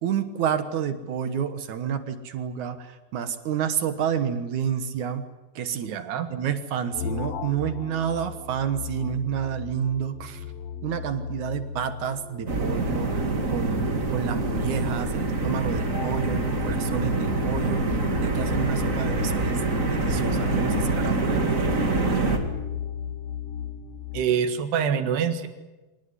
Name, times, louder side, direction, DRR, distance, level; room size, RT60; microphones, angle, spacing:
voice 1, 0.0-5.3 5.6-5.9 6.3-10.4 10.8-21.5, right 8 dB, 60° right, 10 dB, 2.2 m, -29 dB
voice 2, 5.9-6.3 24.1-25.5, right 7 dB, 80° right, 8 dB, 3.7 m, -25 dB
sound 1, 6.9-24.2, left 8 dB, 65° left, 1.5 m, -36 dB
sound 2, 12.5-22.4, right 3 dB, 25° right, 1.9 m, -25 dB
25.5 x 19.0 x 9.7 m, 1.1 s
omnidirectional pair, 4.7 m